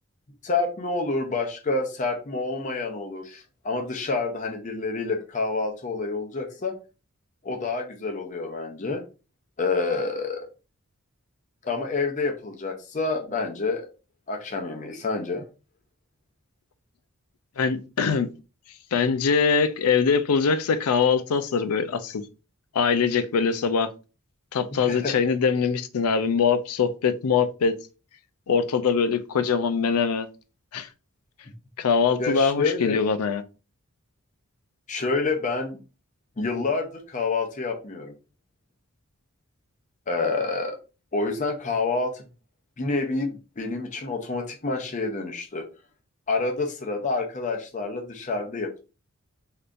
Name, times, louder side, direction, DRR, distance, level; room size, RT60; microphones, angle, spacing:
voice 1, 0.4-6.7 7.4-9.0 9.6-10.5 11.6-13.9 14.3-15.5 24.8-25.2 32.2-33.0 34.9-35.8 36.4-38.1 40.1-40.8 41.1-42.2 42.8-45.7 46.3-48.8, left 3 dB, 35° left, 0.6 m, -28 dB
voice 2, 17.6-18.3 18.9-22.2 22.7-23.9 24.5-27.7 28.5-30.3 30.7-30.9 31.8-33.4, left 5 dB, 85° left, 0.5 m, -23 dB
3.5 x 2.8 x 2.5 m
head